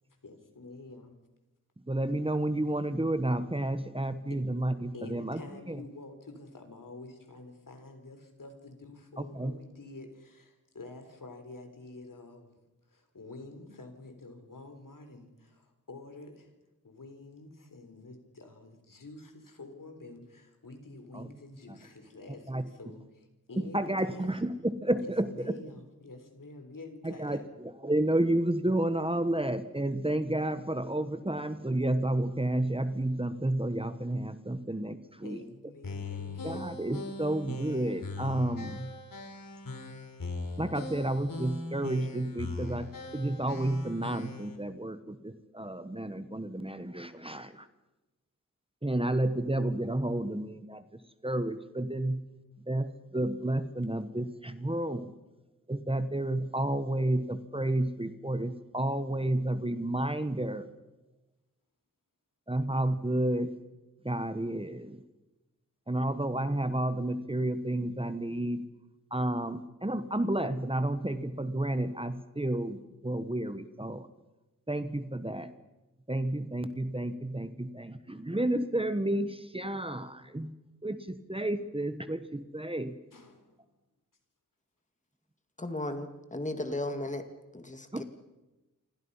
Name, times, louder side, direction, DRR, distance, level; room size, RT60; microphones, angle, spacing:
voice 1, 0.2-1.1 4.3-4.4 4.9-12.6 12.9-16.5 16.8-24.6 25.0-27.5 35.2-36.7 83.1-83.7, left 2 dB, 70° left, 6 dB, 4.0 m, -48 dB
voice 2, 1.9-5.4 5.7-5.8 9.2-9.5 21.1-21.3 22.5-22.6 23.6-25.5 27.0-35.4 36.4-38.9 40.6-47.7 48.8-52.2 52.7-55.1 55.7-60.7 62.5-63.6 64.0-65.0 65.9-68.7 69.1-74.1 74.7-75.5 76.1-80.5 80.8-83.0 87.9-88.0, right 1 dB, 15° right, 11 dB, 1.2 m, -31 dB
sound 1, 35.8-44.6, left 3 dB, 90° left, 3.6 m, -40 dB
voice 3, 85.6-87.2 87.5-88.0, left 1 dB, 20° left, 7 dB, 2.0 m, -35 dB
28.5 x 25.0 x 5.7 m, 1.0 s
wide cardioid pair, 90°, 33 cm